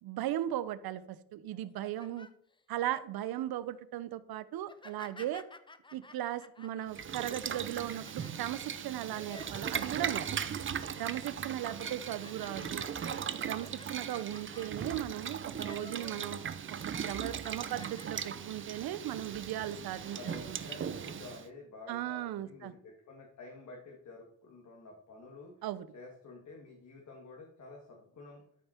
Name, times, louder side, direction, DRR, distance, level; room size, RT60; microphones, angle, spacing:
voice 1, 0.0-2.3 2.7-5.4 5.9-10.5 11.0-12.8 13.3-16.4 16.9-20.2 20.5-20.6 21.9-22.7 25.6-25.9, right 12 dB, 70° right, 15 dB, 0.8 m, -37 dB
sound 1, 1.6-3.0 3.5-3.8 4.6-10.3 10.7-11.2 11.6-16.3 16.6-18.5 18.9-19.1 19.8-20.3, left 3 dB, 15° left, 0.6 m, -54 dB
Boiling, 6.9-21.5, right 8 dB, 30° right, 0.7 m, -38 dB
voice 2, 20.2-25.6 25.9-28.4, left 3 dB, 45° left, 0 dB, 2.0 m, -50 dB
13.0 x 5.5 x 4.4 m, 0.69 s
cardioid pair, 105°, 38 cm